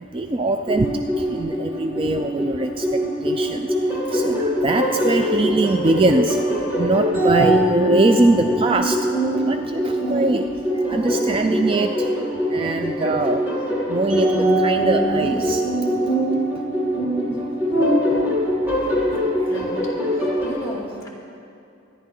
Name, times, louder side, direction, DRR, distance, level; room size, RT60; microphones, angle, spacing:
voice 1, 0.0-12.2 12.5-15.7 16.5-16.6 17.1-17.5 18.2-18.3 18.6-19.0 19.4-19.5, right 2 dB, 25° right, 6 dB, 0.4 m, -23 dB
sound 1, 0.7-20.5, equal, 10° right, 2.9 m, -22 dB
voice 2, 19.4-21.1, left 1 dB, 15° left, -3 dB, 2.6 m, -35 dB
24.5 x 10.5 x 3.8 m, 2.6 s
head